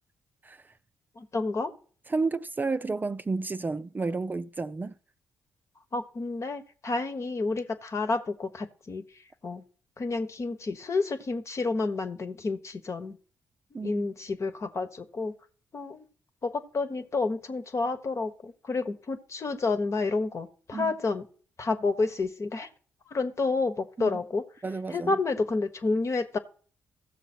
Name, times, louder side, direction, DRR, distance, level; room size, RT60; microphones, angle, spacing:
voice 1, 1.2-1.7 5.9-9.0 9.4-9.6 10.0-13.2 13.7-15.3 15.7-16.0 16.4-21.3 21.6-22.7 23.1-24.4 24.9-26.4, left 3 dB, 45° left, 1.3 m, -30 dB
voice 2, 2.1-4.9 13.7-14.1 20.7-21.0 24.0-24.2 24.6-25.1, right 3 dB, 25° right, 0.5 m, -31 dB
15.0 x 6.8 x 4.5 m
hypercardioid pair, 45°, 7 cm